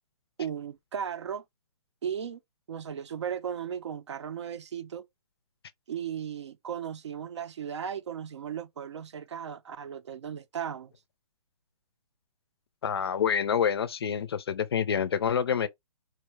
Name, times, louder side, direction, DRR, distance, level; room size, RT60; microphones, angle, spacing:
voice 1, 0.4-1.4 2.0-2.4 2.7-5.0 5.9-10.9, right 8 dB, 50° right, 0.6 m, -36 dB
voice 2, 12.8-15.7, left 8 dB, 45° left, 0.5 m, -27 dB
4.4 x 2.2 x 4.6 m
hypercardioid pair, 170°, 19 cm